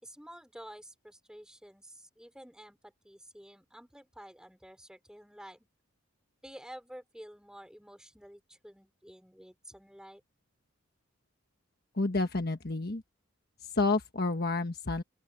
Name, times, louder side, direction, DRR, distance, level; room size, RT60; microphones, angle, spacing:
voice 1, 0.0-5.7 6.4-10.2, equal, 5° right, 5.3 m, -50 dB
voice 2, 11.9-13.0 13.7-15.0, left 3 dB, 45° left, 1.4 m, -29 dB
open air
head